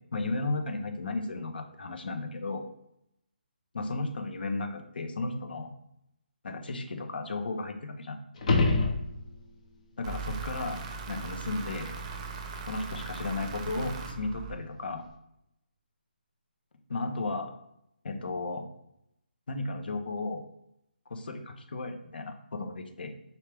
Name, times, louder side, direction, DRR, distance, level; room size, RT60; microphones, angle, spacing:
voice 1, 0.1-2.6 3.7-5.7 6.4-8.2 10.0-11.9 12.7-15.0 16.9-17.5 18.0-18.7 19.5-20.4 21.1-23.1, left 3 dB, 65° left, 6 dB, 1.0 m, -34 dB
sound 1, 8.3-9.6 14.5-14.6, left 3 dB, 45° left, 1.0 m, -26 dB
sound 2, 10.0-15.0, right 4 dB, 35° right, 0.7 m, -39 dB
4.5 x 3.3 x 3.5 m, 0.79 s
figure-of-eight pair, 155°, 6 cm